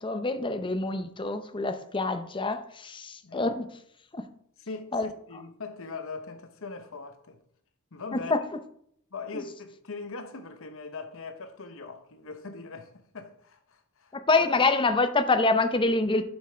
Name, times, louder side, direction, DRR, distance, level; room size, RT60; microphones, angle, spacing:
voice 1, 0.0-3.7 4.1-4.3 4.9-5.1 8.1-8.4 14.1-16.2, left 3 dB, 25° left, 0.6 m, -26 dB
voice 2, 4.7-7.4 7.9-8.3 9.1-14.1 14.4-14.5, left 4 dB, 65° left, 1.0 m, -41 dB
7.5 x 5.4 x 4.5 m
head